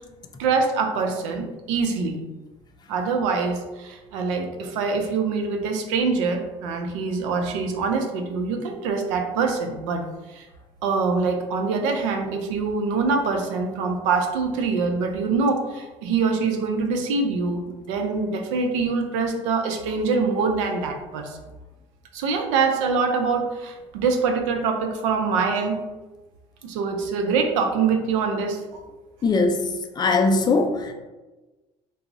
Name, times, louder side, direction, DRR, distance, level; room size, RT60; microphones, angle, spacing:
voice 1, 0.4-2.2 2.9-10.0 10.3-10.5 10.8-21.4 22.1-25.8 26.6-28.8, right 4 dB, 90° right, 0.5 m, -24 dB
voice 2, 29.2-30.9, left 3 dB, 30° left, 0.3 m, -21 dB
2.3 x 2.0 x 3.7 m
supercardioid pair, 95°, 15 cm